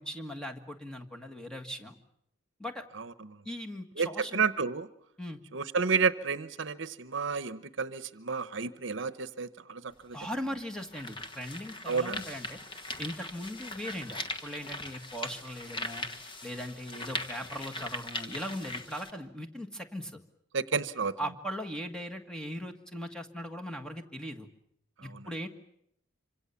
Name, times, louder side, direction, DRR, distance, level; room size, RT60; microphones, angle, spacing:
voice 1, 0.0-2.0 2.6-2.8 3.5-4.4 5.2-5.4 10.1-12.6 13.0-16.1 16.4-20.2 21.2-24.5 25.0-25.5, equal, 5° left, 4 dB, 1.7 m, -39 dB
voice 2, 2.9-3.4 4.0-4.9 5.5-10.2 11.9-12.2 20.5-21.1 25.0-25.3, right 5 dB, 60° right, 14 dB, 0.9 m, -31 dB
sound 1, 9.9-10.0 10.6-19.1, left 2 dB, 25° left, 1.5 m, -40 dB
26.0 x 25.5 x 7.1 m, 0.77 s
head